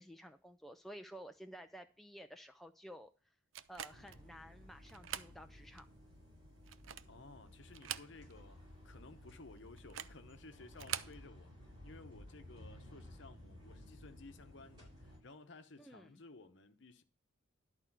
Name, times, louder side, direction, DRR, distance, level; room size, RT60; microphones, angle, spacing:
voice 1, 0.0-3.1 3.7-5.9 15.8-16.1, equal, ahead, 0.3 m, -53 dB
sound 1, 3.5-4.2 4.9-5.4 5.8-5.9 6.6-7.2 7.7-8.5 8.8-8.9 9.8-10.2 10.7-11.2, right 11 dB, 65° right, 0.5 m, -44 dB
sound 2, 3.9-15.2, left 1 dB, 20° right, 5.1 m, -56 dB
voice 2, 7.1-17.0, left 3 dB, 55° left, 1.0 m, -56 dB
11.0 x 4.4 x 6.0 m
head